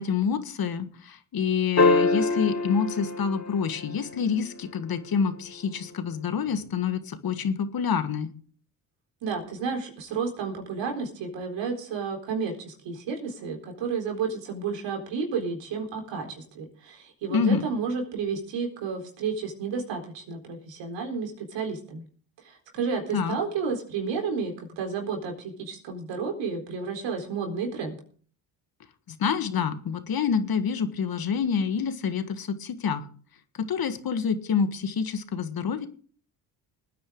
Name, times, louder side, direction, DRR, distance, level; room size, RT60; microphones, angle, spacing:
voice 1, 0.0-8.3 17.3-17.6 23.1-23.4 29.1-33.1 33.7-35.9, left 6 dB, 50° left, 10 dB, 1.7 m, -27 dB
sound 1, 1.8-4.3 6.5-6.6, left 3 dB, 35° left, 3.2 m, -24 dB
voice 2, 9.2-22.0 22.4-28.0, right 5 dB, 75° right, 3 dB, 4.2 m, -31 dB
20.0 x 9.4 x 3.8 m, 0.44 s
supercardioid pair, 60°, 44 cm